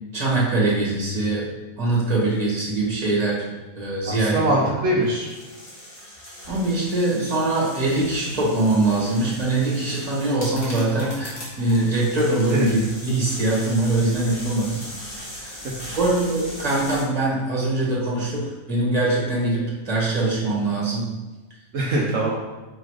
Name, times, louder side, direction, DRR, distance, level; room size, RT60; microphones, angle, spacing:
voice 1, 0.1-1.4 1.8-3.4 3.8-4.4 6.5-14.8 15.3-15.6 16.0-21.1, right 2 dB, 25° right, -5 dB, 1.8 m, -22 dB
voice 2, 4.1-5.3 12.5-12.6 15.6-16.0 21.7-22.3, right 1 dB, 70° right, -3 dB, 1.2 m, -23 dB
sound 1, 5.0-17.0, equal, 70° left, 2.1 m, -39 dB
5.1 x 3.9 x 4.9 m, 1.2 s
omnidirectional pair, 1.4 m